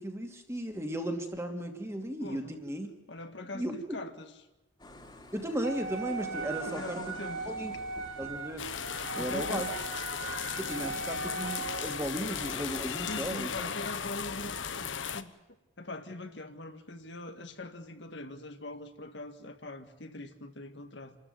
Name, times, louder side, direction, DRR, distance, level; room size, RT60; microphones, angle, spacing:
voice 1, 0.0-2.9 3.5-3.8 5.3-7.2 7.5-7.7 8.2-8.6 9.1-9.7 10.6-13.7, right 1 dB, 15° right, 4 dB, 2.6 m, -35 dB
voice 2, 2.2-2.6 3.1-4.3 6.6-7.5 9.1-9.7 13.1-15.3 15.8-21.2, left 2 dB, 65° left, 7 dB, 1.8 m, -42 dB
sound 1, 4.8-13.7, left 1 dB, 25° left, 2.8 m, -48 dB
Wind instrument woodwind instrument, 5.6-12.1, right 4 dB, 80° right, 3.8 m, -39 dB
sound 2, 8.6-15.2, left 7 dB, 80° left, 1.2 m, -36 dB
27.5 x 13.5 x 9.4 m, 1.0 s
head